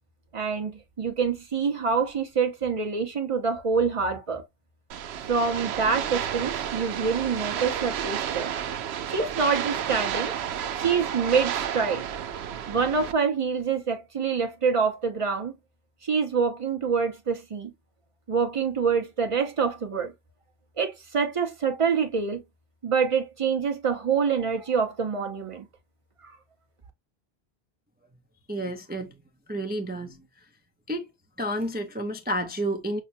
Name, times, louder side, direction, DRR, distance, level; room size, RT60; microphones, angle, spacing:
voice 1, 0.3-0.7 1.0-4.4 5.3-8.5 9.1-10.3 10.7-12.0 12.7-15.6 16.0-17.7 18.3-20.1 20.8-22.4 22.8-25.6 26.2-26.3, right 5 dB, 35° right, 0.9 m, -26 dB
sound 1, 4.9-13.1, right 9 dB, 85° right, 0.8 m, -31 dB
voice 2, 28.5-29.2 29.5-30.4 30.9-31.1 31.4-33.0, right 1 dB, 15° right, 0.4 m, -30 dB
5.9 x 2.1 x 2.6 m
omnidirectional pair, 1.1 m